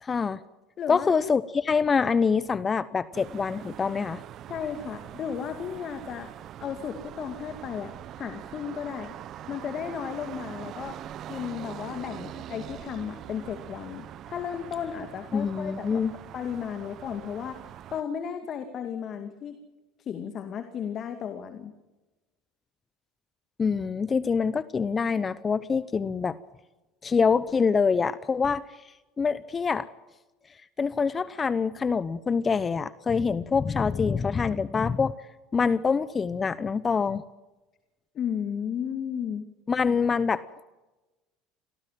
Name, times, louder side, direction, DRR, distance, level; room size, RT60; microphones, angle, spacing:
voice 1, 0.0-0.4 0.9-4.2 15.3-16.1 23.6-26.4 27.0-28.8 29.2-29.9 30.8-35.1 35.5-37.2 39.7-40.4, left 5 dB, 30° left, 17 dB, 0.9 m, -25 dB
voice 2, 0.8-1.1 4.5-6.3 6.6-9.2 9.5-11.0 11.3-16.0 16.3-17.6 17.9-19.6 20.0-21.7 38.1-39.4, left 8 dB, 45° left, 8 dB, 2.4 m, -34 dB
sound 1, 3.1-18.0, right 11 dB, 50° right, 0.9 m, -43 dB
26.5 x 18.0 x 7.7 m, 1.1 s
hypercardioid pair, 80°, 0 cm